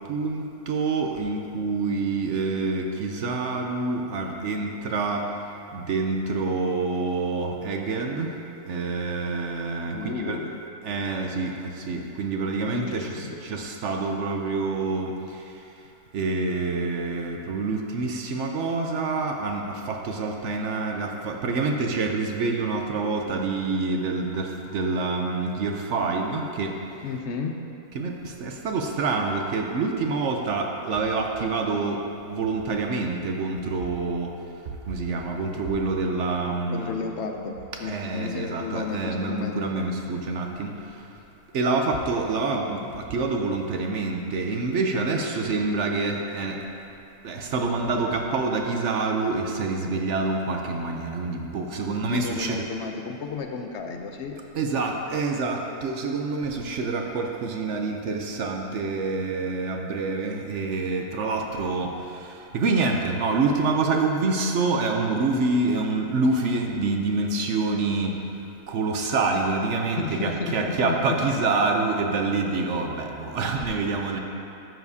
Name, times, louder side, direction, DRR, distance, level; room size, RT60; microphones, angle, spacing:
voice 1, 0.1-5.2 5.7-8.3 8.7-10.4 10.8-15.4 16.1-26.8 27.9-34.3 34.9-36.9 37.8-40.9 41.5-46.6 47.2-52.7 54.5-68.1 68.7-74.2, right 3 dB, 60° right, 2 dB, 0.9 m, -27 dB
voice 2, 9.8-10.5 12.7-13.4 27.0-27.5 36.7-39.6 51.9-54.3 70.0-71.2 74.0-74.2, left 5 dB, 60° left, 3 dB, 0.8 m, -32 dB
12.0 x 7.1 x 2.7 m, 2.8 s
omnidirectional pair, 1.6 m